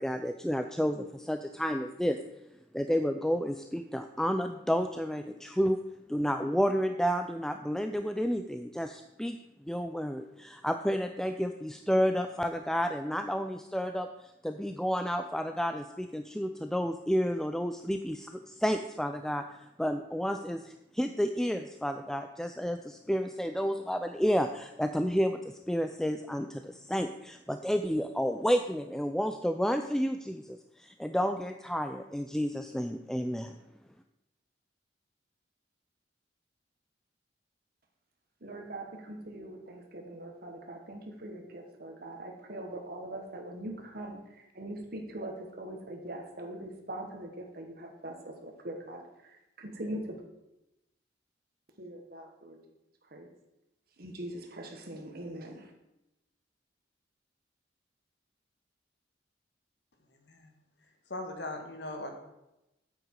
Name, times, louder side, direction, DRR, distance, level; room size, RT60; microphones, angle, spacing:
voice 1, 0.0-2.2 2.7-5.8 6.1-9.4 9.7-14.1 14.4-19.4 19.8-33.5, equal, 5° left, 7 dB, 0.3 m, -31 dB
voice 2, 38.4-50.2 51.8-52.6 53.1-53.3 54.0-55.7, right 1 dB, 55° right, 3 dB, 1.6 m, -42 dB
voice 3, 61.1-62.1, left 2 dB, 65° left, 4 dB, 1.6 m, -39 dB
8.7 x 8.0 x 4.8 m, 0.92 s
head